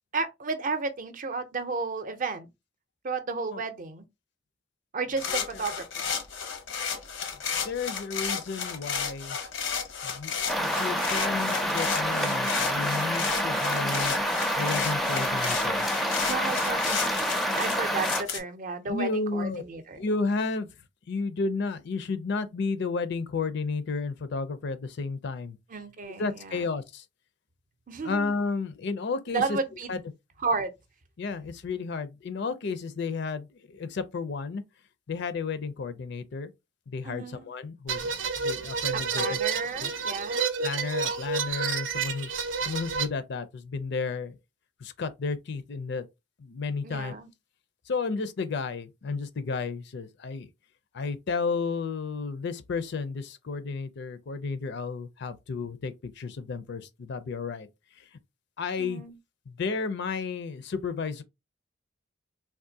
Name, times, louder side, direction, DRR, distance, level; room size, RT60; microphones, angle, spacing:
voice 1, 0.1-2.5 3.0-4.0 4.9-6.1 16.2-20.1 25.7-26.7 27.9-28.3 29.3-30.0 30.4-30.7 37.0-37.5 38.9-40.4 46.8-47.3 58.8-59.2, right 4 dB, 45° right, 0.5 m, -33 dB
sound 1, 5.2-18.4, left 6 dB, 90° left, 0.8 m, -33 dB
voice 2, 7.5-9.4 10.0-14.1 14.6-15.9 18.9-19.6 20.0-20.7 21.1-25.6 26.2-27.0 28.0-29.6 29.9-30.0 31.2-34.6 35.1-36.5 36.9-39.4 39.8-39.9 40.6-42.3 42.7-44.3 44.8-46.0 46.4-47.1 47.9-50.5 50.9-57.7 58.6-59.0 59.5-61.2, left 4 dB, 65° left, 0.5 m, -32 dB
sound 2, 10.5-18.2, equal, ahead, 0.4 m, -27 dB
sound 3, 37.9-43.1, right 5 dB, 85° right, 0.6 m, -30 dB
3.5 x 2.5 x 2.7 m
head